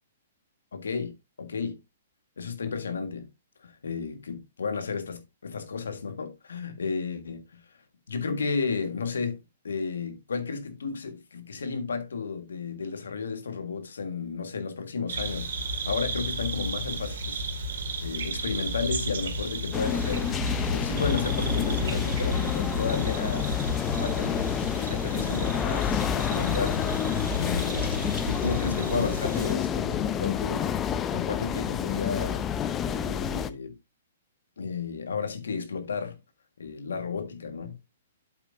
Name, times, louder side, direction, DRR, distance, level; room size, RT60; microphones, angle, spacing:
voice 1, 0.7-1.8 2.4-3.3 3.6-7.6 8.1-23.5 24.0-27.0 27.3-28.0 28.2-30.7 31.1-32.4 32.8-33.7 34.6-36.2 36.6-37.8, left 5 dB, 90° left, 1.6 m, -33 dB
sound 1, 15.1-29.5, equal, 75° right, 2.4 m, -32 dB
sound 2, 19.7-33.5, left 8 dB, 20° left, 0.7 m, -29 dB
8.1 x 8.0 x 2.6 m
hypercardioid pair, 140°, 0 cm